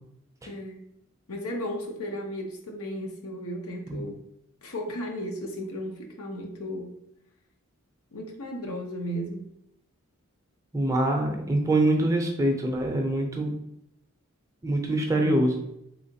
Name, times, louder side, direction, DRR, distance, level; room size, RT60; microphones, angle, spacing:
voice 1, 0.4-0.8 1.3-4.2 4.6-6.9 8.1-9.5 15.1-15.4, equal, 90° left, 2 dB, 0.7 m, -35 dB
voice 2, 10.7-13.5 14.6-15.7, right 1 dB, 15° right, 2 dB, 0.5 m, -24 dB
3.8 x 3.1 x 2.7 m, 0.78 s
head